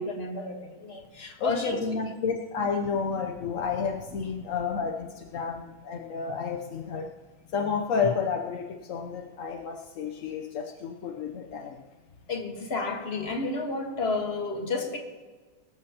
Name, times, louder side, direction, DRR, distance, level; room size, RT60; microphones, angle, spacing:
voice 1, 0.0-1.8 12.3-15.0, left 3 dB, 35° left, 3 dB, 1.5 m, -31 dB
voice 2, 1.4-7.1 7.5-11.8, left 5 dB, 60° left, 2 dB, 0.8 m, -31 dB
22.0 x 13.5 x 2.9 m, 1.4 s
omnidirectional pair, 2.2 m